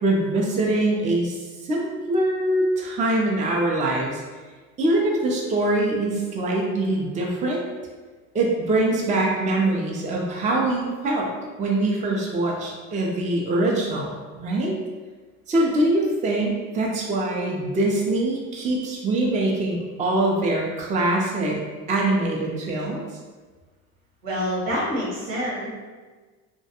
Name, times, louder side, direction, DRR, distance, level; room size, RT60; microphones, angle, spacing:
voice 1, 0.0-1.3 1.6-4.2 4.8-7.6 8.3-11.3 11.6-14.8 15.5-21.6 21.9-23.0, right 2 dB, 20° right, -1 dB, 0.4 m, -23 dB
voice 2, 24.2-25.7, equal, 80° right, -7 dB, 1.2 m, -26 dB
2.4 x 2.1 x 2.8 m, 1.4 s
supercardioid pair, 95°, 33 cm